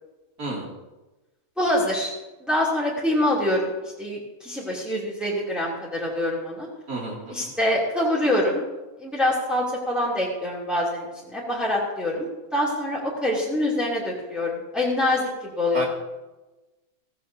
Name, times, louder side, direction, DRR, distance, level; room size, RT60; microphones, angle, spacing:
voice 1, 0.4-0.7 6.9-7.5 15.7-15.9, right 2 dB, 80° right, -2 dB, 3.2 m, -31 dB
voice 2, 1.6-2.1 2.4-6.7 7.3-8.6 9.0-15.8, left 1 dB, ahead, -6 dB, 2.8 m, -25 dB
16.0 x 15.0 x 2.8 m, 1.1 s
omnidirectional pair, 1.6 m